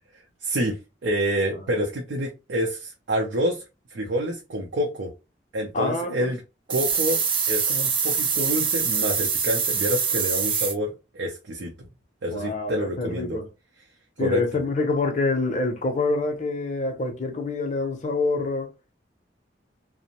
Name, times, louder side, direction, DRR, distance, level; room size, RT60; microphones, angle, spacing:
voice 1, 0.4-3.6 3.9-5.1 5.5-6.4 6.7-7.2 7.5-11.9 12.2-13.4 14.2-14.4, equal, 90° right, 0.5 m, -27 dB
voice 2, 5.7-6.3 12.3-13.5 14.2-18.7, left 3 dB, 40° left, 0.5 m, -26 dB
sound 1, 6.7-10.7, right 6 dB, 30° right, 0.4 m, -24 dB
2.5 x 2.0 x 2.8 m
head